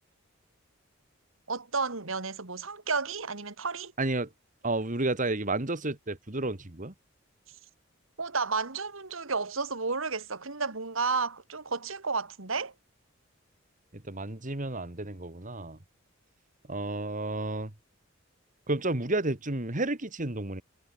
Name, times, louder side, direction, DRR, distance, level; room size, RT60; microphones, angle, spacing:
voice 1, 1.5-3.9 8.2-12.7, right 4 dB, 75° right, 2.2 m, -32 dB
voice 2, 4.0-4.3 4.6-6.9 14.1-15.8 16.7-17.7 18.7-20.6, right 2 dB, 40° right, 2.2 m, -31 dB
head